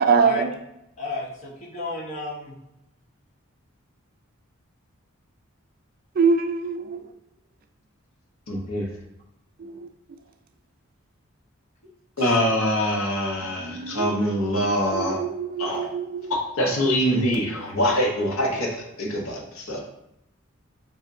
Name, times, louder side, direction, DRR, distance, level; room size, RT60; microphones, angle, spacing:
voice 1, 0.1-0.5 6.2-7.0 9.6-9.9 13.4-14.1 14.6-16.3, right 5 dB, 45° right, 6 dB, 0.4 m, -24 dB
voice 2, 1.0-2.5 15.6-15.9 17.0-17.1 18.5-18.6, left 3 dB, 35° left, -4 dB, 1.1 m, -33 dB
voice 3, 8.5-8.8 12.2-15.2 15.6-15.8 16.6-19.8, equal, 85° left, 0 dB, 1.1 m, -24 dB
7.4 x 2.7 x 2.7 m, 0.84 s
head